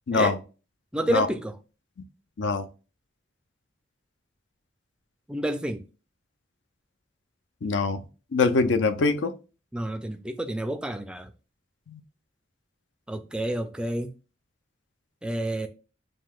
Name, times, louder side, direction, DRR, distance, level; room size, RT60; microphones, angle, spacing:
voice 1, 0.1-0.4 1.1-1.3 2.4-2.7 7.6-8.0 8.3-9.3 11.9-12.0, left 4 dB, 75° left, 0.5 m, -23 dB
voice 2, 0.9-1.6 5.3-5.8 9.7-11.3 13.1-14.1 15.2-15.7, right 1 dB, 5° right, 0.3 m, -29 dB
7.5 x 2.7 x 2.3 m
head